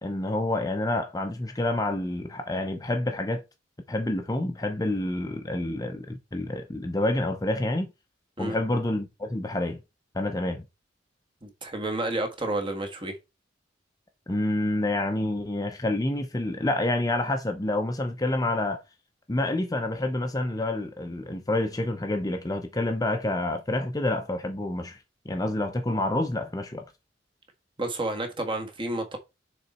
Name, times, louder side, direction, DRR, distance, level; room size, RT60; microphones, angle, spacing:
voice 1, 0.0-3.4 3.9-7.9 8.4-9.8 10.1-10.6 14.3-18.8 19.3-25.0 25.2-26.9, left 1 dB, 20° left, 0.7 m, -28 dB
voice 2, 11.4-13.2 27.8-29.2, right 2 dB, 30° right, 1.5 m, -30 dB
6.6 x 4.0 x 4.3 m
head